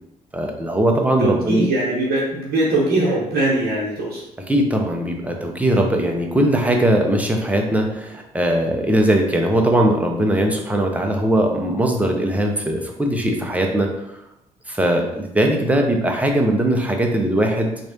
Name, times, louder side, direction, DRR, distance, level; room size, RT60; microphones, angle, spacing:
voice 1, 0.3-1.6 4.4-14.2 14.7-17.7, right 1 dB, 10° right, 2 dB, 0.7 m, -20 dB
voice 2, 1.2-4.2, right 1 dB, 55° right, -5 dB, 1.0 m, -21 dB
3.4 x 3.1 x 2.7 m, 0.81 s
figure-of-eight pair, 45°, 19 cm